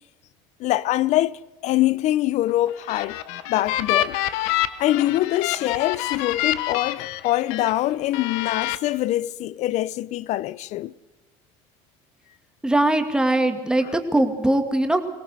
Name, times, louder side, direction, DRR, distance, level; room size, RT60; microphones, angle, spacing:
voice 1, 0.6-3.2 3.5-4.2 4.8-10.9, left 15 dB, 60° left, 0.7 m, -24 dB
sound 1, 2.7-7.7 8.1-8.8, left 13 dB, 90° left, 1.0 m, -27 dB
voice 2, 12.6-15.0, right 1 dB, 5° right, 2.2 m, -21 dB
23.0 x 18.0 x 6.4 m
cardioid pair, 110°, 13 cm